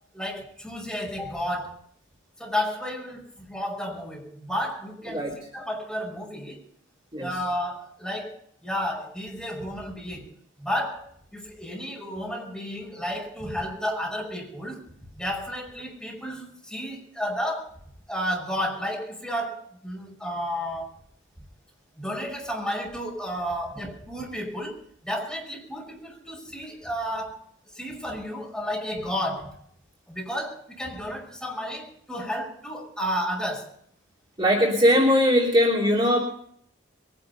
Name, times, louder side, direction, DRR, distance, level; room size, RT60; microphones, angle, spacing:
voice 1, 0.1-1.8 2.4-5.2 5.5-6.6 7.2-10.3 10.6-14.9 15.1-17.8 18.1-20.9 22.0-27.4 27.7-29.6 30.1-33.7, equal, 5° left, -2 dB, 5.8 m, -32 dB
voice 2, 34.4-36.2, equal, 25° right, -3 dB, 3.1 m, -20 dB
22.5 x 11.0 x 5.5 m, 0.63 s
head